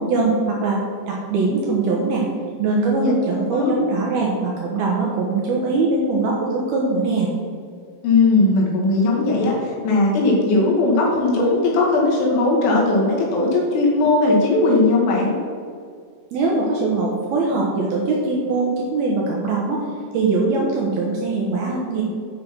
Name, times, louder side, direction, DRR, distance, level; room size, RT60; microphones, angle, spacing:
voice 1, 0.0-2.2 2.6-7.3 16.3-19.8 20.1-22.0, right 3 dB, 70° right, -3 dB, 2.4 m, -21 dB
voice 2, 8.0-15.4, left 2 dB, 75° left, -4 dB, 4.4 m, -18 dB
10.0 x 5.6 x 6.0 m, 2.2 s
omnidirectional pair, 5.6 m